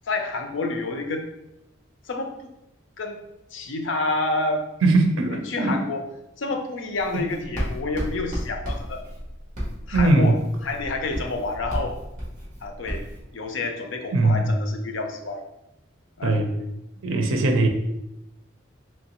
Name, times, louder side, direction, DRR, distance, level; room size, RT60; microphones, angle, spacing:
voice 1, 0.1-1.3 2.1-2.5 3.0-3.2 3.5-4.6 5.3-6.0 6.4-9.0 9.9-10.3 10.6-12.0 12.6-13.1 13.3-15.4 16.2-16.4, left 3 dB, 70° left, 5 dB, 0.5 m, -29 dB
voice 2, 4.8-5.8 7.1-7.2 9.9-10.4 14.1-14.5 16.2-16.5 17.0-17.7, right 2 dB, 85° right, 5 dB, 0.6 m, -20 dB
Writing, 6.9-13.2, equal, 40° right, 1.3 m, -33 dB
3.7 x 3.2 x 2.9 m, 0.88 s
head